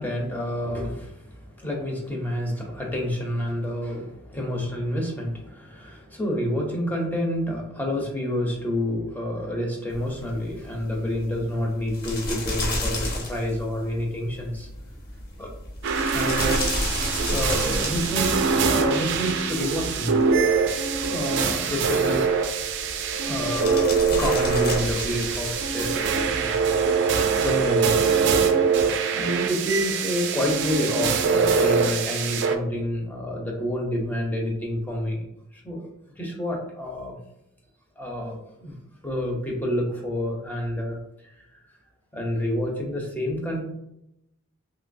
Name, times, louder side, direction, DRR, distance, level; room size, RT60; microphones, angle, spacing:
voice 1, 0.0-14.7 15.4-15.5 16.1-16.6 17.3-18.4 18.6-20.1 21.1-22.3 23.2-26.7 27.4-28.2 29.1-35.3 35.5-35.9 36.2-37.2 38.0-38.7 39.0-41.0 41.5-41.6 42.1-43.6, left 1 dB, 10° left, -1 dB, 0.5 m, -28 dB
sound 1, 9.9-26.8, left 1 dB, 45° left, 0.7 m, -33 dB
sound 2, 15.8-32.6, right 5 dB, 55° right, 0.3 m, -23 dB
3.0 x 2.9 x 2.5 m, 0.82 s
head